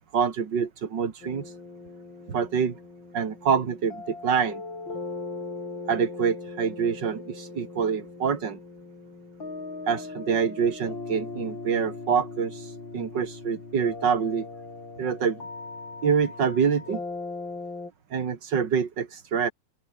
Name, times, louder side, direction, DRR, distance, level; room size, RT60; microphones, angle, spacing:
voice 1, 0.0-1.5 2.3-2.8 3.1-4.6 5.9-8.6 9.9-14.5 15.0-15.4 16.0-17.0 18.1-19.5, right 6 dB, 55° right, 2.6 m, -26 dB
sound 1, 1.2-17.9, left 3 dB, 60° left, 5.9 m, -39 dB
open air
omnidirectional pair, 2.4 m